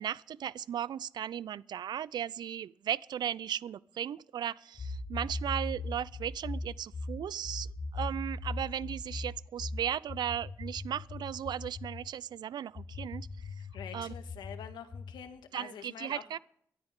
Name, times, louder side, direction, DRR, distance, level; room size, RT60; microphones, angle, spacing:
voice 1, 0.0-13.3 13.9-14.1 15.5-16.4, right 10 dB, 70° right, 0.5 m, -36 dB
sound 1, 4.8-12.1 12.7-15.2, left 2 dB, 55° left, 3.9 m, -39 dB
voice 2, 13.7-16.2, left 8 dB, 80° left, 1.9 m, -46 dB
22.5 x 13.0 x 3.7 m
supercardioid pair, 50°, 8 cm